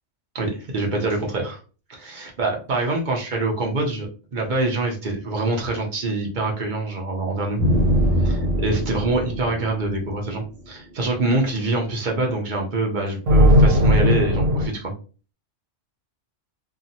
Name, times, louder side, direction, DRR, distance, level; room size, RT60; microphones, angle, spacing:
voice 1, 0.3-1.6 1.9-7.6 8.2-14.9, right 2 dB, 45° right, 0 dB, 0.8 m, -25 dB
sound 1, 7.6-10.3 13.3-14.7, equal, 80° right, 1.1 m, -18 dB
2.8 x 2.4 x 2.6 m, 0.36 s
omnidirectional pair, 1.3 m